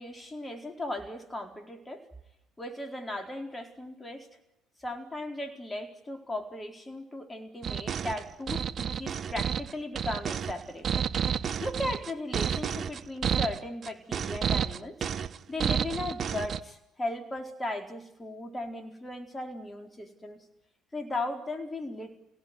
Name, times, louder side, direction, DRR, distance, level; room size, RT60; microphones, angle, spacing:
voice 1, 0.0-2.1 2.6-4.3 4.8-11.0 11.6-15.0 15.5-20.4 20.9-22.2, left 1 dB, 20° left, 5 dB, 4.4 m, -37 dB
sound 1, 7.6-16.6, right 8 dB, 45° right, 1.0 m, -30 dB
28.5 x 17.5 x 9.7 m, 0.86 s
hypercardioid pair, 60°, 0 cm